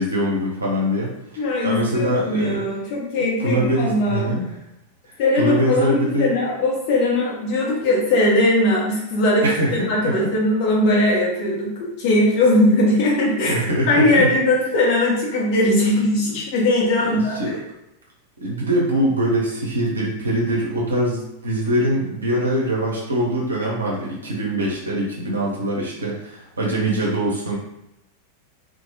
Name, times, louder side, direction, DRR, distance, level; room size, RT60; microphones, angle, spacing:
voice 1, 0.0-2.6 3.4-4.5 5.1-6.3 9.4-10.3 13.4-14.3 17.0-17.6 18.4-27.6, right 1 dB, 75° right, -4 dB, 0.6 m, -23 dB
voice 2, 1.4-4.3 5.2-9.5 9.9-13.6 13.9-17.4, left 1 dB, 45° left, -4 dB, 0.8 m, -19 dB
2.2 x 2.0 x 2.8 m, 0.87 s
figure-of-eight pair, 90°, 0 cm